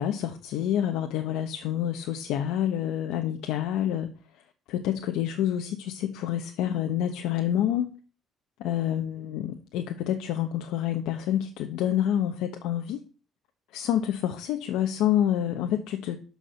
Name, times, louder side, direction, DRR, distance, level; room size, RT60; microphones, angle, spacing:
voice 1, 0.0-4.1 4.7-7.9 8.6-13.0 13.7-16.2, left 11 dB, 85° left, 1.2 m, -28 dB
12.5 x 4.9 x 6.9 m
cardioid pair, 140°, 0 cm